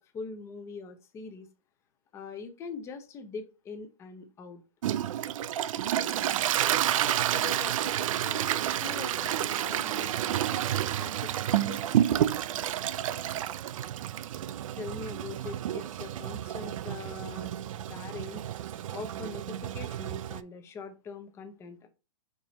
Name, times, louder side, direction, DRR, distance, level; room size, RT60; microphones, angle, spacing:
voice 1, 0.0-1.5 2.1-4.6 14.7-18.4 18.9-21.9, left 4 dB, 15° left, 0.6 m, -42 dB
Toilet flush, 4.8-20.4, right 11 dB, 70° right, 0.4 m, -30 dB
voice 2, 7.3-8.5 8.8-12.2 17.7-17.8, left 11 dB, 80° left, 0.4 m, -45 dB
4.5 x 4.0 x 2.9 m
hypercardioid pair, 150°, 18 cm